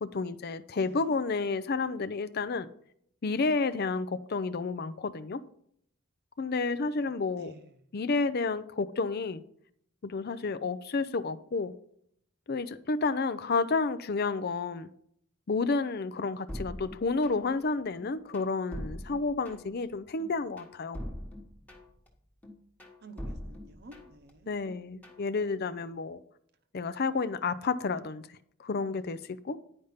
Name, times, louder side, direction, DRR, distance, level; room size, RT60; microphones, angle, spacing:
voice 1, 0.0-2.7 3.2-5.4 6.4-7.5 7.9-9.4 10.0-11.7 12.5-14.9 15.5-21.0 24.5-26.2 26.7-28.3 28.6-29.6, left 4 dB, 45° left, 0.5 m, -30 dB
voice 2, 0.8-1.2 7.3-7.7 23.0-24.5 25.1-25.9, right 1 dB, 45° right, 0.9 m, -52 dB
sound 1, 16.5-17.6 18.0-19.8 20.2-22.1 22.4-24.3 24.7-25.3, equal, 5° left, 1.3 m, -42 dB
10.0 x 5.1 x 5.6 m
head